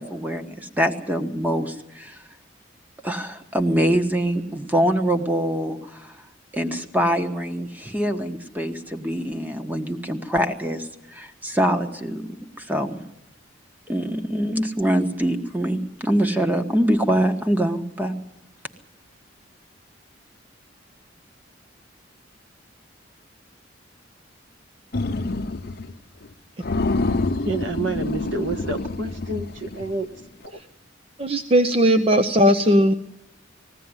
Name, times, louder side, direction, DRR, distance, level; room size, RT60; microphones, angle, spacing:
voice 1, 0.0-2.2 3.0-6.2 6.5-12.2 12.6-13.0 13.9-18.1, equal, 10° right, 6 dB, 1.3 m, -24 dB
sound 1, 24.9-25.9 26.2-26.3 26.6-30.0, left 2 dB, 55° left, 0.8 m, -27 dB
voice 2, 27.4-30.1 30.4-30.6, right 2 dB, 75° right, 6 dB, 1.6 m, -28 dB
voice 3, 31.2-32.9, equal, 30° right, 8 dB, 0.8 m, -17 dB
20.5 x 16.0 x 9.8 m, 0.86 s
head